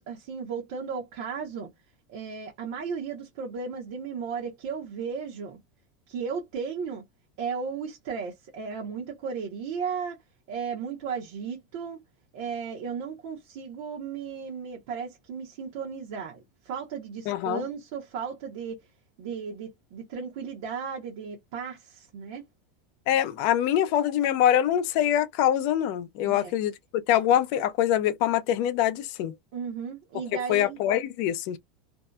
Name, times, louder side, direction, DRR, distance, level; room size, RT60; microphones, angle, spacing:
voice 1, 0.0-1.7 2.1-5.6 6.1-7.0 7.4-10.2 10.5-12.0 12.3-16.4 16.6-18.8 19.2-22.4 26.2-26.5 29.5-30.8, right 6 dB, 55° right, 0.8 m, -35 dB
voice 2, 17.3-17.6 23.1-29.3 30.5-31.6, left 11 dB, 45° left, 0.5 m, -24 dB
2.6 x 2.1 x 2.2 m
supercardioid pair, 175°, 0 cm